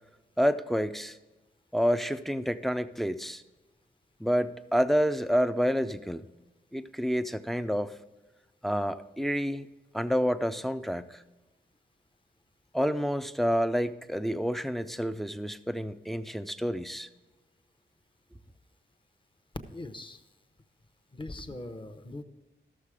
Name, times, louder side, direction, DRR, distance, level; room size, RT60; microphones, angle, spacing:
voice 1, 0.4-1.2 1.7-3.4 4.2-6.2 6.7-7.9 8.6-9.7 9.9-11.2 12.7-17.1, equal, ahead, 10 dB, 0.4 m, -28 dB
voice 2, 19.7-20.2 21.1-22.2, left 2 dB, 25° left, 8 dB, 0.9 m, -41 dB
13.5 x 6.7 x 4.9 m, 1.1 s
wide cardioid pair, 120°, 19 cm